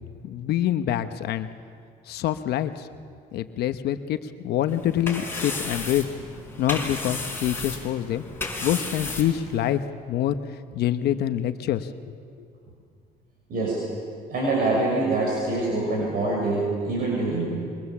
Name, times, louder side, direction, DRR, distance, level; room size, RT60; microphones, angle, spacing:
voice 1, 0.2-1.5 2.1-2.9 3.3-6.0 6.6-8.2 8.6-9.8 10.1-10.4 10.7-12.5, left 11 dB, 75° left, 10 dB, 1.0 m, -26 dB
sound 1, 4.7-9.8, left 3 dB, 15° left, 5.7 m, -34 dB
voice 2, 14.3-17.5, right 2 dB, 60° right, -3 dB, 6.7 m, -25 dB
27.5 x 23.0 x 7.3 m, 2.3 s
cardioid pair, 110°, 17 cm